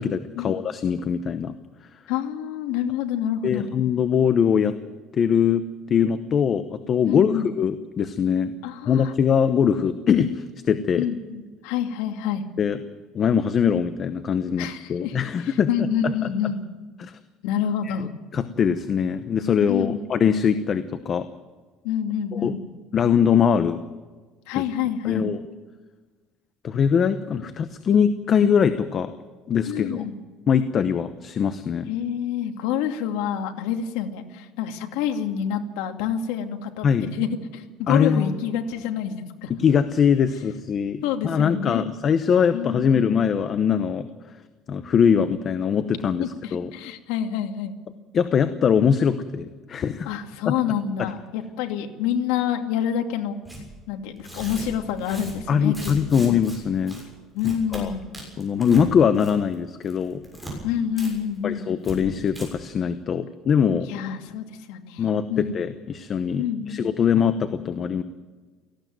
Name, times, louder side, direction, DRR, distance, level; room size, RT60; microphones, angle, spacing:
voice 1, 0.0-1.5 3.4-4.7 5.2-8.5 8.9-11.1 12.6-12.8 13.1-16.3 17.0-17.2 17.8-18.1 18.3-21.3 22.3-22.6 22.9-23.8 24.5-24.6 25.0-25.5 26.6-29.1 29.5-30.0 30.5-31.9 36.8-37.1 37.9-38.3 39.5-44.1 44.7-46.7 48.1-50.1 50.4-50.5 51.0-51.1 55.5-57.0 57.7-57.9 58.4-60.2 61.4-63.9 65.0-68.0, left 7 dB, 30° left, 11 dB, 0.9 m, -22 dB
voice 2, 2.1-3.7 7.1-7.5 8.6-9.1 11.0-12.4 14.6-15.2 15.7-16.6 17.4-18.1 19.7-20.0 21.8-22.6 24.5-25.3 29.7-30.2 31.9-39.5 41.0-41.8 42.5-42.9 46.2-47.7 50.1-53.4 53.9-55.8 56.1-56.2 57.3-58.1 60.6-61.7 63.9-65.0 65.3-65.6 66.4-66.8, left 9 dB, 85° left, 5 dB, 2.4 m, -27 dB
Tearing, 53.5-53.6 54.2-56.6 56.9-57.0 57.4-57.8 58.1-58.9 59.2-59.5 59.8-60.5 61.0-61.1 61.4-61.5 61.8-62.0 62.3-62.5, right 1 dB, ahead, 6.8 m, -38 dB
18.0 x 15.5 x 9.3 m, 1.3 s
cardioid pair, 170°, 0 cm